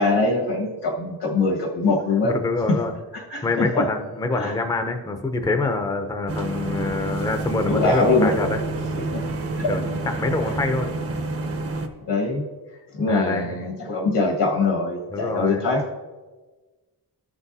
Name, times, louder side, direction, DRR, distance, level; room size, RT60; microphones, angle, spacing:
voice 1, 0.0-2.4 2.7-2.8 3.1-3.9 4.4-4.5 7.7-8.3 8.9-9.3 9.6-9.8 10.0-10.5 12.1-12.4 12.9-15.8, left 3 dB, 85° left, 1 dB, 1.7 m, -23 dB
voice 2, 2.2-2.9 3.4-8.6 9.7-11.0 13.1-13.6 15.1-15.7, left 3 dB, 10° left, 6 dB, 0.5 m, -25 dB
sound 1, 6.3-11.9, right 2 dB, 35° right, 0.7 m, -29 dB
sound 2, 8.4-12.0, right 4 dB, 65° right, 0.9 m, -39 dB
14.0 x 6.0 x 2.7 m, 1.3 s
wide cardioid pair, 155°, 40 cm